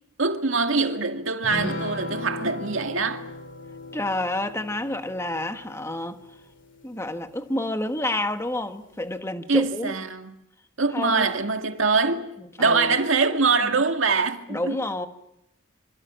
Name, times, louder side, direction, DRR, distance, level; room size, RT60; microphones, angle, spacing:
voice 1, 0.2-3.2 9.5-10.3 10.8-12.3 12.6-14.8, right 4 dB, 85° right, 2.0 m, -23 dB
sound 1, 1.4-7.1, left 2 dB, 65° left, 2.8 m, -37 dB
voice 2, 3.9-6.2 6.8-9.9 10.9-11.2 12.4-13.0 13.6-13.8 14.5-15.1, left 1 dB, 15° left, 1.3 m, -29 dB
27.5 x 25.0 x 6.3 m
head